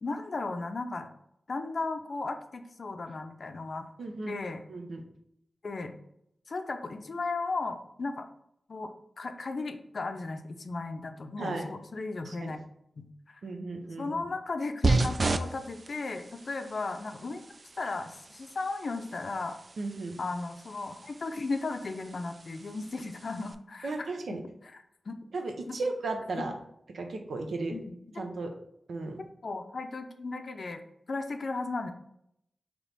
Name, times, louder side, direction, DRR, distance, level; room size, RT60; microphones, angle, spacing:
voice 1, 0.0-1.1 1.5-3.9 4.3-4.6 5.6-6.0 6.5-8.3 8.7-12.6 13.0-13.4 14.0-17.4 17.8-19.6 20.2-23.9 24.3-24.4 25.1-25.2 25.7-25.8 26.3-26.4 27.7-27.9 29.4-30.8 31.1-31.9, left 3 dB, 65° left, 7 dB, 0.4 m, -35 dB
voice 2, 4.0-4.3 4.7-5.0 11.4-11.7 12.3-12.5 13.4-14.2 19.8-20.2 23.8-24.4 25.3-26.5 26.9-27.8 28.2-28.5 28.9-29.2, right 3 dB, 90° right, 3 dB, 0.6 m, -35 dB
sound 1, 14.8-23.5, right 3 dB, 50° right, 0.3 m, -34 dB
3.4 x 3.0 x 3.9 m, 0.76 s
cardioid pair, 60°, 0 cm